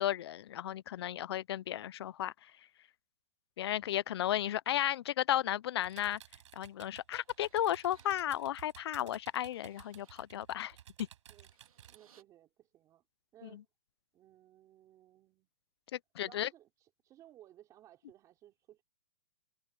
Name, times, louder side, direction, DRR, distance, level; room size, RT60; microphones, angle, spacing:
voice 1, 0.0-2.3 3.6-6.2 6.6-10.7 15.9-16.5, left 12 dB, 50° left, 0.5 m, -34 dB
sound 1, 5.8-12.0, right 10 dB, 60° right, 5.5 m, -56 dB
sound 2, 6.6-6.7 7.2-8.2 8.7-8.8 9.2-10.3 11.2-12.2, right 8 dB, 85° right, 4.0 m, -67 dB
voice 2, 11.9-13.0 13.3-13.6 14.1-15.5 16.2-18.8, right 13 dB, 20° right, 5.2 m, -59 dB
hypercardioid pair, 165°, 18 cm